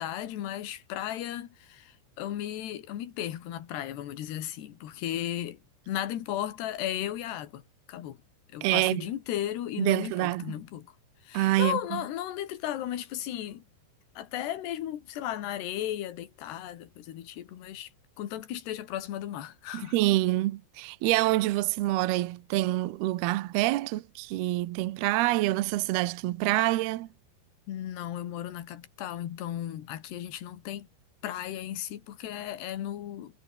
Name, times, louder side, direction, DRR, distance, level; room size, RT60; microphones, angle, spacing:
voice 1, 0.0-7.6 7.9-8.2 8.5-11.0 11.2-13.6 14.2-17.9 18.2-20.0 27.7-30.9 31.2-33.4, left 12 dB, 65° left, 3.9 m, -35 dB
voice 2, 8.6-9.0 9.8-10.6 11.3-12.0 19.7-27.1, right 17 dB, 75° right, 2.5 m, -26 dB
omnidirectional pair, 5.6 m